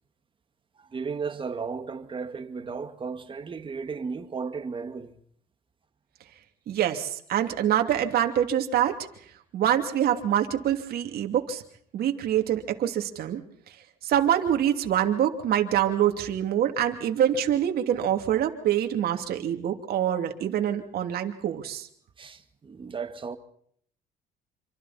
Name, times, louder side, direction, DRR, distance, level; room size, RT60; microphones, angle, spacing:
voice 1, 0.8-5.1 22.2-23.4, right 5 dB, 30° right, 2.0 m, -35 dB
voice 2, 6.7-9.0 9.5-11.6 11.9-13.4 13.7-13.8 14.0-21.9, right 10 dB, 65° right, 2.8 m, -25 dB
27.0 x 25.5 x 4.3 m
cardioid pair, 110°, 17 cm